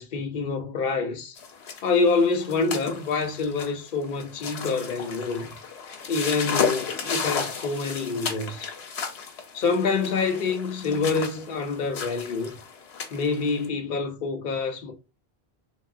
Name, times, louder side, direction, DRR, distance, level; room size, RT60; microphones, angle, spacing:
voice 1, 0.0-1.4 1.8-5.5 6.1-8.7 9.5-12.5 13.1-14.9, left 4 dB, 60° left, 0.7 m, -26 dB
sound 1, 1.4-13.7, left 5 dB, 90° left, 1.0 m, -34 dB
3.4 x 2.1 x 2.4 m
omnidirectional pair, 1.0 m